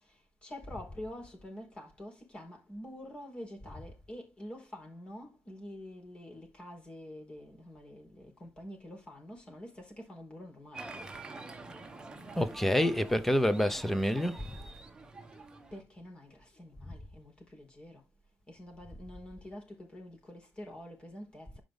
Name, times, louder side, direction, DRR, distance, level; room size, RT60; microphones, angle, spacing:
voice 1, 0.4-10.9 15.7-18.0 18.5-21.6, left 1 dB, 20° left, 4.3 m, -47 dB
Applause, 10.7-15.8, right 3 dB, 15° right, 1.4 m, -47 dB
voice 2, 12.4-14.4, equal, 5° left, 0.8 m, -27 dB
12.0 x 5.2 x 3.4 m
cardioid pair, 150°, 5 cm